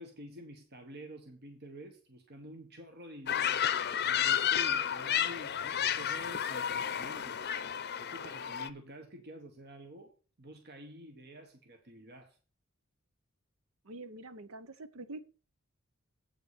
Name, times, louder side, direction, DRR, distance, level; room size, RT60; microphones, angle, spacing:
voice 1, 0.0-7.7 8.0-10.1 10.4-12.4, equal, 50° right, 1.4 m, -49 dB
sound 1, 3.3-8.7, left 9 dB, 50° left, 0.6 m, -31 dB
voice 2, 13.8-15.2, right 2 dB, 75° right, 1.0 m, -45 dB
8.3 x 5.9 x 6.7 m
head